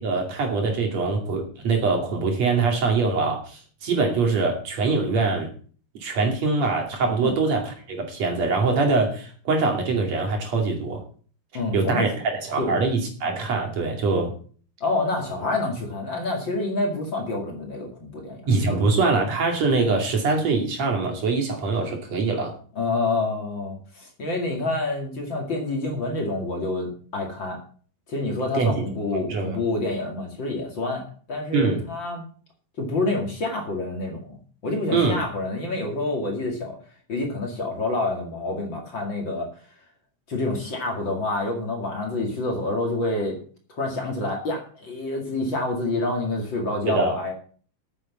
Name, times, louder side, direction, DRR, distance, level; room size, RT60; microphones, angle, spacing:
voice 1, 0.0-5.5 6.0-11.0 11.7-12.1 12.4-14.3 18.5-22.5 28.5-28.9 29.3-29.6 31.5-31.8 34.9-35.2 46.9-47.2, right 3 dB, 60° right, 2 dB, 3.6 m, -23 dB
voice 2, 11.5-12.1 12.6-12.8 14.8-18.9 22.8-27.6 28.1-32.2 32.8-34.4 34.6-36.8 37.1-39.5 40.3-43.4 43.7-47.3, left 2 dB, 40° left, 1 dB, 2.8 m, -27 dB
9.3 x 8.4 x 7.2 m, 0.44 s
omnidirectional pair, 3.6 m